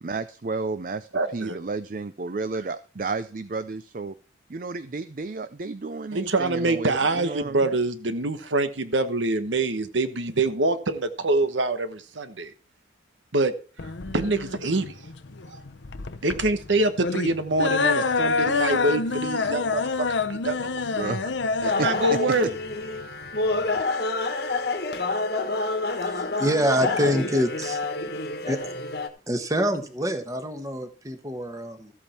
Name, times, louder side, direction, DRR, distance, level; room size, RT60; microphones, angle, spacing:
voice 1, 0.0-4.1 4.5-7.7 20.8-21.3 21.8-22.2, right 3 dB, 45° right, 12 dB, 0.5 m, -32 dB
voice 2, 1.1-1.6 6.1-12.5 13.3-13.5 14.1-15.0 16.2-20.7 21.6-22.5 26.8-27.1, right 2 dB, 90° right, 10 dB, 1.1 m, -25 dB
sound 1, 13.8-23.8, left 4 dB, 80° left, 0.8 m, -27 dB
sound 2, 21.6-29.1, left 3 dB, 60° left, 1.4 m, -28 dB
voice 3, 26.0-27.8 28.5-28.6 29.3-31.9, equal, 20° right, 7 dB, 1.3 m, -26 dB
14.0 x 8.5 x 4.4 m, 0.38 s
head